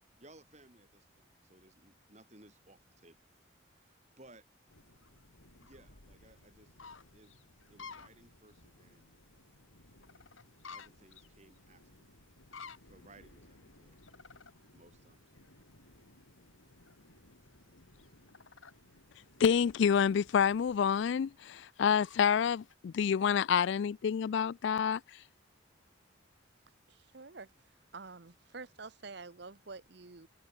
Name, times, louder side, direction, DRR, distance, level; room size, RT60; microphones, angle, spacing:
voice 1, 0.2-4.4 5.6-6.8 7.1-7.3 7.7-9.2 10.7-12.2 12.8-14.0 14.7-15.3, right 2 dB, 35° right, 5.5 m, -61 dB
sound 1, 4.7-22.7, left 4 dB, 80° left, 3.4 m, -56 dB
voice 2, 19.4-25.0, left 7 dB, 60° left, 0.3 m, -28 dB
voice 3, 26.9-27.5 27.9-30.3, right 4 dB, 55° right, 0.9 m, -48 dB
head